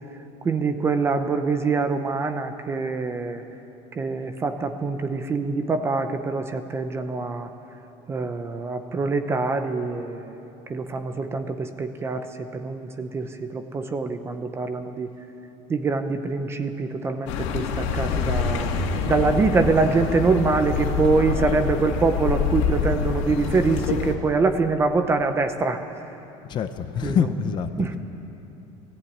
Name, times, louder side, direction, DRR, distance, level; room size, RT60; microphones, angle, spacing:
voice 1, 0.4-3.4 4.0-7.5 8.1-10.4 10.7-15.1 15.7-18.7 19.1-25.8 27.0-27.2 27.8-27.9, right 4 dB, 15° right, 8 dB, 0.7 m, -24 dB
Accelerating revving vroom, 17.3-24.2, left 6 dB, 85° left, 2.2 m, -26 dB
voice 2, 26.4-28.0, left 7 dB, 30° left, 9 dB, 0.8 m, -26 dB
19.5 x 15.0 x 9.4 m, 2.9 s
cardioid pair, 175°, 16 cm